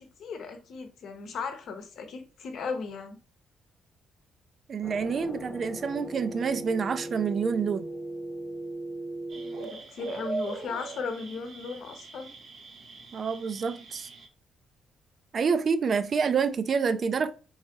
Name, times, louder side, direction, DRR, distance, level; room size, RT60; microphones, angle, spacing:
voice 1, 0.0-3.2 9.3-12.3, left 5 dB, 70° left, 0.8 m, -37 dB
voice 2, 4.7-7.9 13.1-14.1 15.3-17.3, right 5 dB, 45° right, 0.4 m, -27 dB
sound 1, 4.8-9.6, right 1 dB, 30° left, 0.5 m, -38 dB
sound 2, 9.3-14.3, right 4 dB, 65° right, 0.9 m, -40 dB
3.4 x 3.2 x 2.8 m
cardioid pair, 90°, 0 cm